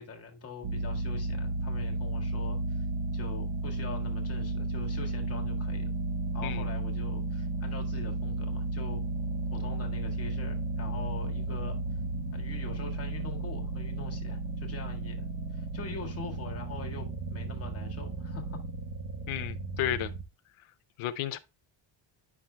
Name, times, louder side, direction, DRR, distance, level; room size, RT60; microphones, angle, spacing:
voice 1, 0.0-2.8 3.1-5.9 6.3-9.0 9.5-11.8 12.3-18.6, left 4 dB, 30° left, 1.6 m, -44 dB
sound 1, 0.6-20.3, right 2 dB, 70° right, 1.3 m, -33 dB
voice 2, 19.3-20.1 21.0-21.4, left 12 dB, 90° left, 0.7 m, -32 dB
9.7 x 6.0 x 2.2 m
cardioid pair, 170°, 48 cm